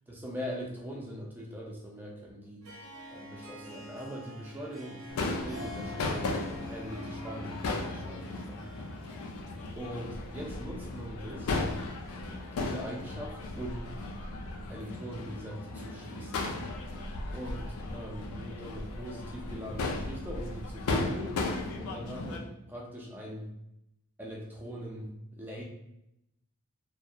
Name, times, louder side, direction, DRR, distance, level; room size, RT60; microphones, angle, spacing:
voice 1, 0.1-2.6 3.1-5.0 5.4-6.3 6.7-8.7 9.8-11.6 12.6-14.0 14.7-16.5 17.3-21.4 21.7-23.5 24.2-25.1 25.4-25.6, equal, 10° right, -2 dB, 0.4 m, -41 dB
Harp, 2.6-10.3, equal, 70° right, 0.5 m, -46 dB
Crowd / Fireworks, 5.1-22.4, left 2 dB, 75° left, 0.4 m, -36 dB
2.7 x 2.1 x 2.2 m, 0.83 s
head